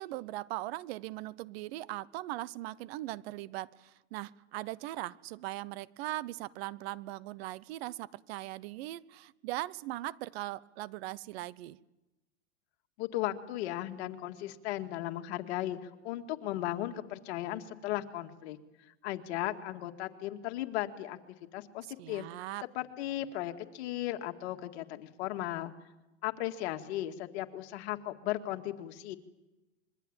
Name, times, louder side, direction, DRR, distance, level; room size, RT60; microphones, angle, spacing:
voice 1, 0.0-11.8 22.0-22.6, right 16 dB, 60° right, 21 dB, 0.8 m, -40 dB
voice 2, 13.0-18.6 19.0-21.2 21.5-22.2 22.8-25.7 26.2-29.2, left 14 dB, 70° left, 6 dB, 2.1 m, -36 dB
26.0 x 22.5 x 8.8 m, 1.0 s
supercardioid pair, 140°, 34 cm